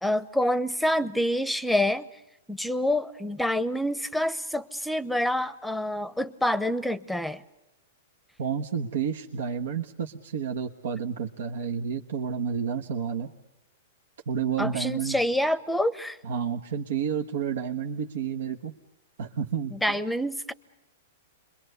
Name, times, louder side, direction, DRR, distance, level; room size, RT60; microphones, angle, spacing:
voice 1, 0.0-2.1 2.5-7.4 14.6-16.2 19.7-20.5, left 1 dB, ahead, 17 dB, 0.8 m, -27 dB
voice 2, 8.4-13.3 14.3-15.2 16.2-18.7 19.2-20.0, right 7 dB, 75° right, 3 dB, 1.4 m, -30 dB
28.0 x 22.5 x 6.8 m, 0.94 s
hypercardioid pair, 140°, 0 cm